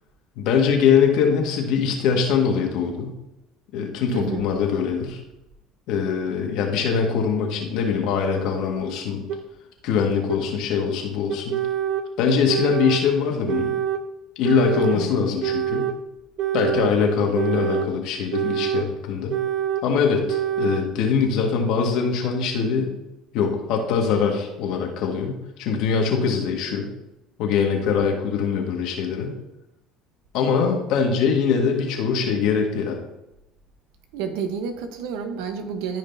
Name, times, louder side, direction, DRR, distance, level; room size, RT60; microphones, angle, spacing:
voice 1, 0.4-3.2 3.7-5.2 5.9-9.2 9.8-11.6 12.2-13.8 14.4-15.9 16.5-19.4 19.8-22.9 23.3-26.9 27.4-29.4 30.3-33.0, left 6 dB, 70° left, 2 dB, 1.9 m, -22 dB
voice 2, 4.1-4.5 14.9-15.1 34.1-36.0, right 6 dB, 80° right, 6 dB, 1.2 m, -30 dB
sound 1, 9.3-9.4 10.3-10.4 11.3-12.1 12.5-13.0 13.5-14.0 14.4-15.0 15.4-16.0 16.4-16.9 17.3-17.9 18.3-18.9 19.3-19.9 20.3-20.8, right 10 dB, 65° right, 0.8 m, -25 dB
14.0 x 5.2 x 2.8 m, 0.92 s
supercardioid pair, 90°, 0 cm